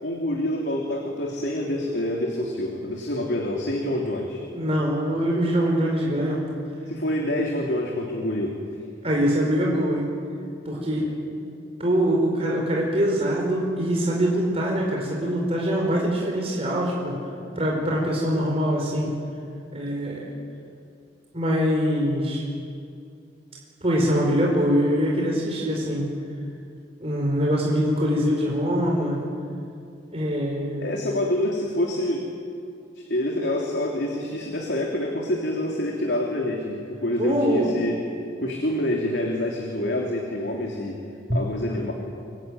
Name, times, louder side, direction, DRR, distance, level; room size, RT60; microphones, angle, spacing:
voice 1, 0.0-4.4 6.9-8.6 10.9-11.1 17.3-17.9 30.8-32.2 33.0-38.0 38.4-41.0 41.3-41.9, left 1 dB, 75° left, 0 dB, 3.2 m, -27 dB
voice 2, 4.5-6.4 9.0-10.1 10.6-11.1 11.8-17.1 17.6-19.1 19.7-20.3 21.3-22.4 23.8-26.0 27.0-29.2 30.1-30.9 37.2-37.8 41.3-41.4, equal, 35° right, -2 dB, 4.8 m, -23 dB
25.0 x 23.0 x 9.3 m, 2.5 s
head